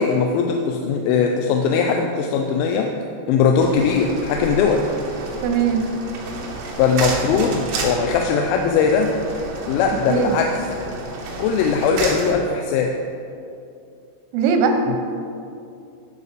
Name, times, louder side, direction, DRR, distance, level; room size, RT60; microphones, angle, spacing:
voice 1, 0.0-2.9 3.3-4.9 6.8-9.1 9.7-10.7 11.4-13.0 14.9-15.0, left 5 dB, 90° left, 3 dB, 3.1 m, -20 dB
sound 1, 3.6-12.3, right 3 dB, 70° right, 3.2 m, -31 dB
voice 2, 5.4-5.8 10.1-10.4 14.3-14.8, right 5 dB, 90° right, 5 dB, 3.4 m, -19 dB
11.0 x 5.1 x 6.7 m, 2.5 s
omnidirectional pair, 5.4 m